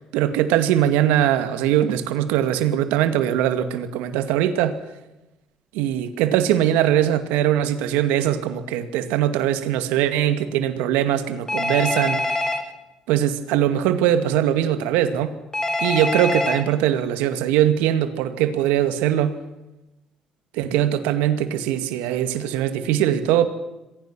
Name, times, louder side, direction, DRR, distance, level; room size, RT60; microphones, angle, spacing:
voice 1, 0.1-4.8 5.7-12.4 13.1-15.3 15.8-19.4 20.5-23.5, right 11 dB, 85° right, 10 dB, 2.1 m, -21 dB
Telephone, 11.5-12.6 15.5-16.6, left 2 dB, 20° left, 4.2 m, -24 dB
27.5 x 21.5 x 6.2 m, 0.99 s
supercardioid pair, 65°, 3 cm